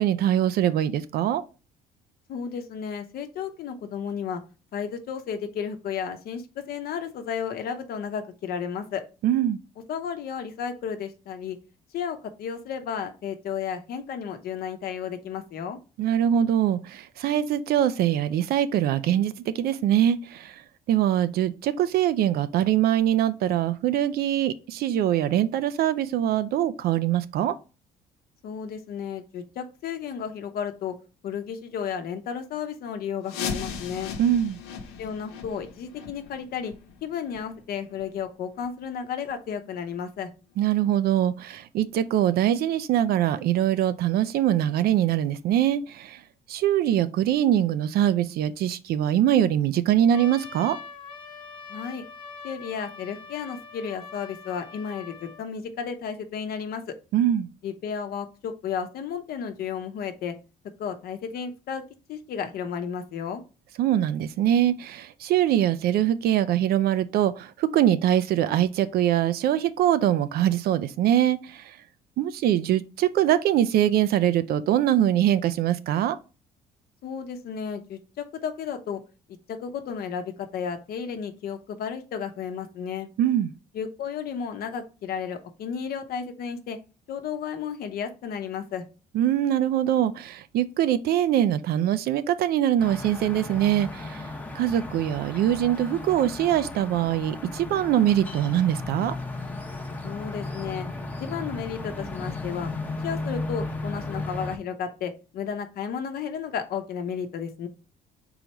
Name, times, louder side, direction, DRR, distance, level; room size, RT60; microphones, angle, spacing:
voice 1, 0.0-1.4 9.2-9.6 16.0-20.6 20.9-27.6 34.2-34.6 40.6-46.2 46.5-50.8 57.1-57.5 63.8-71.8 72.2-76.2 83.2-83.5 89.1-99.1, right 11 dB, 65° right, 0.5 m, -23 dB
voice 2, 2.3-4.4 4.7-9.0 9.9-11.6 11.9-15.8 28.4-31.0 31.2-34.2 35.0-36.7 37.0-40.3 51.7-52.0 52.4-56.9 57.6-60.3 60.8-61.8 62.1-63.4 77.0-79.0 79.5-83.1 83.7-86.8 87.1-88.8 100.0-100.9 101.2-102.7 103.0-107.7, left 7 dB, 65° left, 0.8 m, -33 dB
sound 1, 33.3-38.8 39.2-39.3 39.8-39.9 40.6-40.7 41.2-41.3, left 6 dB, 90° left, 0.9 m, -38 dB
Trumpet, 50.1-55.5, left 5 dB, 30° left, 1.0 m, -43 dB
sound 2, 92.8-104.6, left 2 dB, 10° left, 0.8 m, -35 dB
3.9 x 3.0 x 4.5 m
cardioid pair, 110°, 17 cm